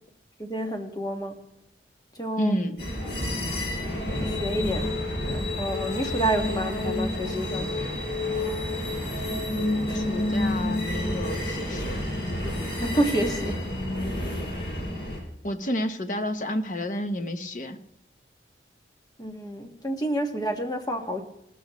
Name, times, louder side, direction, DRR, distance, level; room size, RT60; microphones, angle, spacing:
voice 1, 0.4-1.3 2.2-2.6 4.3-4.9 5.3-7.7 12.8-13.6 19.2-21.2, right 1 dB, 20° left, 3 dB, 1.5 m, -29 dB
voice 2, 2.4-2.8 9.9-12.0 15.4-17.8, left 1 dB, 45° left, 8 dB, 1.0 m, -30 dB
sound 1, 2.8-15.2, left 1 dB, 60° left, 6.0 m, -29 dB
18.0 x 13.5 x 3.1 m, 0.79 s
head